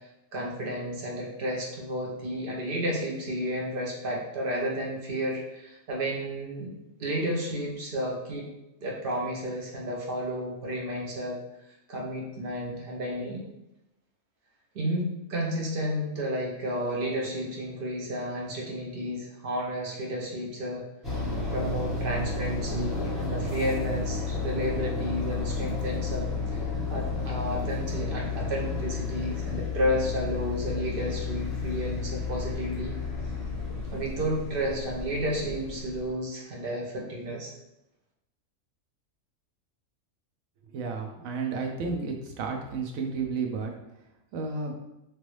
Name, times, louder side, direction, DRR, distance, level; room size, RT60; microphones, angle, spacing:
voice 1, 0.3-6.7 7.0-8.5 8.8-11.4 11.9-13.4 14.7-20.8 21.4-33.0 33.9-37.5, equal, 50° right, -2 dB, 0.8 m, -32 dB
sound 1, 21.0-36.1, left 3 dB, ahead, 0.9 m, -32 dB
voice 2, 40.7-43.7 44.3-44.7, right 4 dB, 80° right, 2 dB, 1.0 m, -32 dB
3.1 x 2.6 x 3.1 m, 0.88 s
omnidirectional pair, 1.4 m